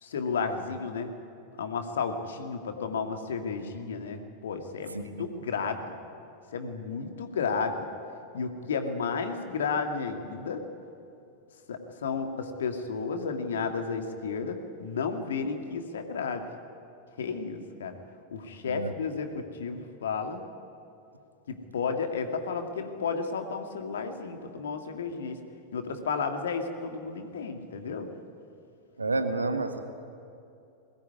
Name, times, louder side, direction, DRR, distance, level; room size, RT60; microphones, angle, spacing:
voice 1, 0.0-1.1 1.6-6.0 6.5-7.9 8.3-10.6 11.7-16.5 17.2-18.0 18.3-20.4 21.5-25.4 25.7-28.1, left 5 dB, 65° left, 6 dB, 2.2 m, -32 dB
voice 2, 29.0-29.8, right 3 dB, 80° right, 8 dB, 1.5 m, -29 dB
21.5 x 18.5 x 9.6 m, 2.6 s
figure-of-eight pair, 90°, 0 cm